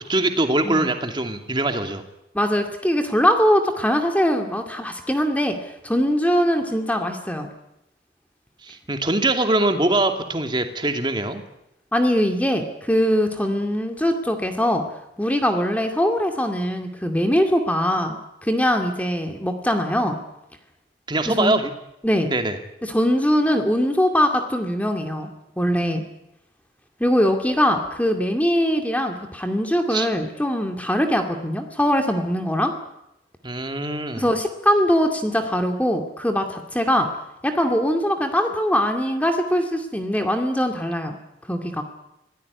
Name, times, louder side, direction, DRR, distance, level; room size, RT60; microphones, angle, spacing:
voice 1, 0.1-2.0 8.6-11.4 21.1-21.7 22.3-22.6 29.9-30.1 33.4-34.2, right 2 dB, 25° right, 6 dB, 2.6 m, -23 dB
voice 2, 2.3-7.5 11.9-14.8 15.2-20.2 21.4-21.6 22.0-22.3 22.8-26.0 27.0-32.7 34.2-37.1 37.4-41.2 41.5-41.8, equal, 10° left, 5 dB, 2.3 m, -22 dB
25.0 x 17.5 x 9.6 m, 0.87 s
head